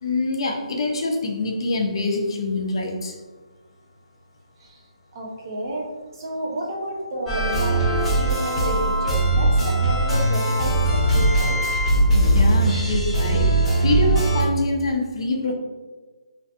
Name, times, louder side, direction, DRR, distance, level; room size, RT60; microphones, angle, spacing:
voice 1, 0.0-3.2 12.1-15.5, left 2 dB, 50° left, 2 dB, 0.5 m, -25 dB
voice 2, 5.1-5.9 6.1-11.6, right 1 dB, 35° right, -2 dB, 0.6 m, -31 dB
sound 1, 7.3-14.4, right 2 dB, 5° left, 0.8 m, -20 dB
2.5 x 2.4 x 2.3 m, 1.3 s
hypercardioid pair, 165°, 3 cm